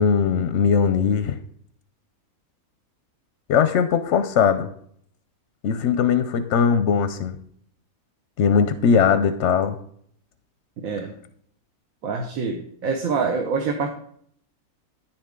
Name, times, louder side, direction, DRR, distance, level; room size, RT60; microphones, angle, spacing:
voice 1, 0.0-1.4 3.5-4.7 5.6-7.4 8.4-9.8, left 6 dB, 65° left, 10 dB, 0.8 m, -20 dB
voice 2, 10.8-11.1 12.0-13.9, right 5 dB, 70° right, 3 dB, 1.3 m, -25 dB
9.7 x 7.0 x 3.6 m, 0.65 s
omnidirectional pair, 1.5 m